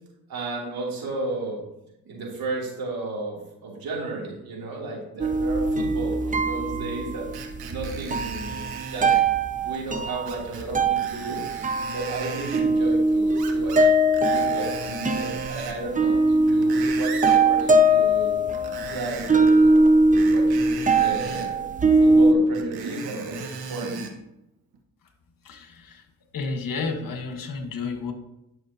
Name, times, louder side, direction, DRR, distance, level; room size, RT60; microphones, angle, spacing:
voice 1, 0.3-1.6 2.0-7.2 7.7-9.1 9.5-11.4 11.9-13.9 14.3-18.4 18.9-19.8 20.2-20.6 21.0-21.6 22.0-23.9, right 3 dB, 75° right, -3 dB, 3.1 m, -33 dB
sound 1, 5.2-22.3, right 2 dB, 20° right, 0.7 m, -21 dB
Screech, 7.3-9.3 10.3-10.7 11.0-12.6 13.3-13.9 14.1-15.8 16.3-17.4 18.5-19.5 20.2-21.5 22.5-24.1 24.7-24.8, right 5 dB, 90° right, 1.2 m, -36 dB
voice 2, 25.4-26.0 26.3-28.1, left 4 dB, 65° left, 5 dB, 1.5 m, -31 dB
11.0 x 6.3 x 2.9 m, 0.86 s
cardioid pair, 80°, 36 cm